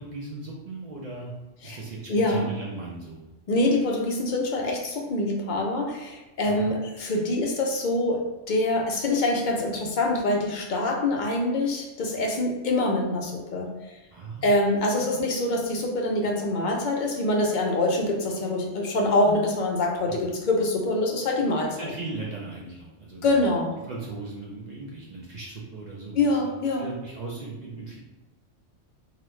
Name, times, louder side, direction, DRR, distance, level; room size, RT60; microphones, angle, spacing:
voice 1, 0.0-1.3 1.6-3.2 6.5-6.7 14.1-14.5 20.1-20.2 21.8-23.5 23.8-26.5 26.8-28.0, right 3 dB, 50° right, -4 dB, 0.5 m, -37 dB
voice 2, 2.1-2.5 3.5-14.0 14.4-21.8 23.2-23.7 26.1-26.9, left 2 dB, 55° left, 1 dB, 0.5 m, -25 dB
2.9 x 2.4 x 3.1 m, 1.1 s
omnidirectional pair, 1.3 m